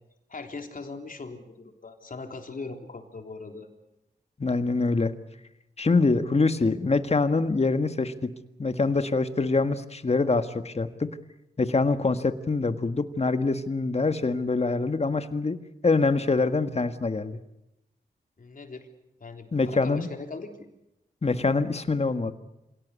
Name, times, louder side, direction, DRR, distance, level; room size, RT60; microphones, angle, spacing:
voice 1, 0.3-3.7 18.4-18.9 19.2-20.7, left 3 dB, 55° left, 4 dB, 3.6 m, -40 dB
voice 2, 4.4-5.1 5.8-8.3 8.6-11.1 11.6-15.6 15.8-17.4 19.5-20.1 21.2-22.3, left 3 dB, 40° left, 9 dB, 1.7 m, -24 dB
27.0 x 18.0 x 8.4 m, 0.92 s
cardioid pair, 65°, 17 cm